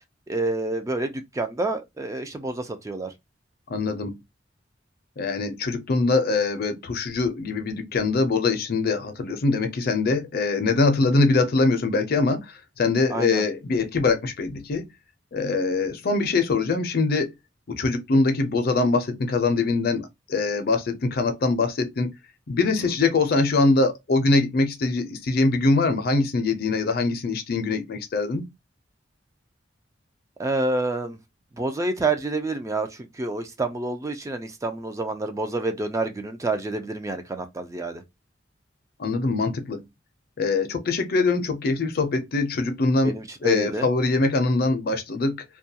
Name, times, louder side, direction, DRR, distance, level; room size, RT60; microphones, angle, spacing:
voice 1, 0.3-3.1 13.1-13.4 22.8-22.9 30.4-31.2 31.6-38.0 43.0-43.9, right 2 dB, 15° right, 0.3 m, -28 dB
voice 2, 3.7-4.2 5.2-14.9 15.3-17.3 17.7-22.1 22.5-28.5 39.0-39.9 40.4-43.2 43.4-45.4, left 3 dB, 55° left, 0.5 m, -23 dB
2.3 x 2.2 x 2.7 m
head